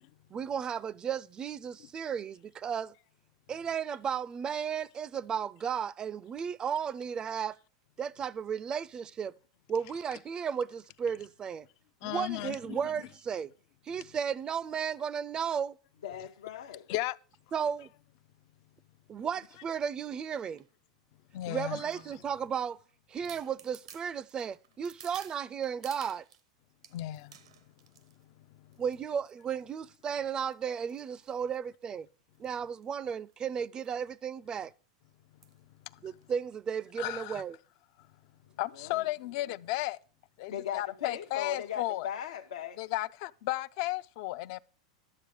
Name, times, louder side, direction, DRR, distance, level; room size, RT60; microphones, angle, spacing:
voice 1, 0.3-2.9 3.5-7.6 8.0-9.3 9.7-11.7 12.0-13.5 13.9-15.8 17.5-17.9 19.1-20.6 21.5-22.8 23.1-26.2 28.8-32.1 32.4-34.7 36.0-37.6, right 7 dB, 25° right, 0.4 m, -34 dB
voice 2, 12.0-12.8 16.9-17.2 21.3-21.8 26.9-27.4 28.1-28.8 35.9-36.2 37.0-37.4 38.0-38.1 38.6-40.0 40.4-42.1 42.8-44.6, left 17 dB, 60° left, 0.4 m, -35 dB
voice 3, 16.0-16.9 38.8-39.1 40.5-42.8, left 9 dB, 85° left, 0.8 m, -38 dB
sound 1, 20.4-20.7 21.4-22.5 22.9-23.0 23.2-26.4 26.8-28.2 28.7-29.0 29.3-29.6 30.1-31.8 32.3-32.6 32.8-32.9 33.1-33.3 33.8-34.0 34.3-34.4 35.4-35.7 36.2-36.3, right 9 dB, 85° right, 0.8 m, -54 dB
11.0 x 7.6 x 4.8 m
hypercardioid pair, 110°, 3 cm